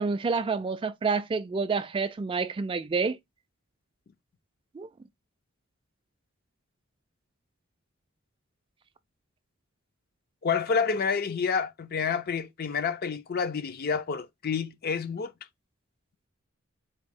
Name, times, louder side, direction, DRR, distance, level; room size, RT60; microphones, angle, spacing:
voice 1, 0.0-3.2 4.8-4.9, right 4 dB, 25° right, 0.3 m, -28 dB
voice 2, 10.4-15.3, left 5 dB, 45° left, 0.4 m, -29 dB
4.1 x 2.7 x 3.5 m
head